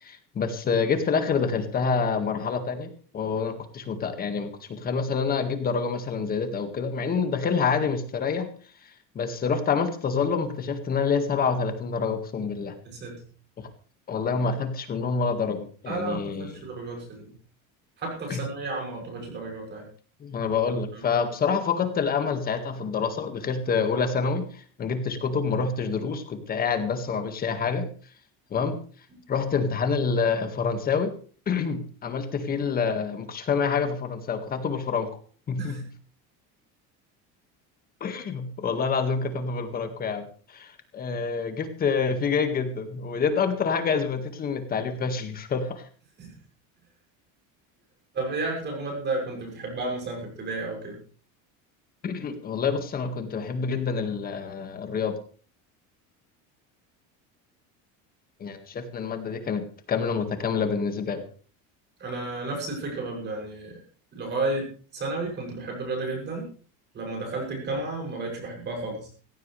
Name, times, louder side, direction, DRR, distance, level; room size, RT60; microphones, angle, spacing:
voice 1, 0.0-2.9 3.1-8.5 9.2-12.7 14.1-16.6 18.3-18.4 20.2-24.5 24.8-27.9 28.5-28.8 29.3-31.1 31.5-35.1 35.5-35.8 38.0-45.8 52.0-55.2 58.4-59.6 59.9-61.2, left 5 dB, 25° left, 8 dB, 1.9 m, -27 dB
voice 2, 12.8-13.2 15.9-17.3 18.0-19.9 20.9-21.2 35.6-35.8 46.2-46.4 48.1-51.0 62.0-63.7 64.1-66.5 66.9-69.1, right 2 dB, 30° right, 1 dB, 7.2 m, -32 dB
17.5 x 16.0 x 3.4 m, 0.41 s
cardioid pair, 165°, 34 cm